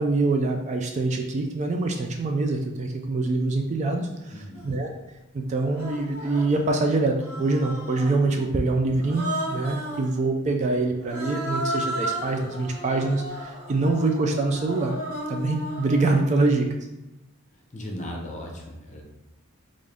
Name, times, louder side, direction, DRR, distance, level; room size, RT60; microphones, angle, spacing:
voice 1, 0.0-4.9 5.3-14.9 15.3-16.8, right 2 dB, 35° right, 3 dB, 0.3 m, -25 dB
voice 2, 4.3-4.7 17.7-19.0, equal, 35° left, 1 dB, 0.6 m, -36 dB
Human voice, 4.5-4.7 5.7-6.6 7.2-8.3 9.0-10.1 11.0-16.3, right 1 dB, 75° right, 0.9 m, -34 dB
3.7 x 2.5 x 3.4 m, 0.95 s
head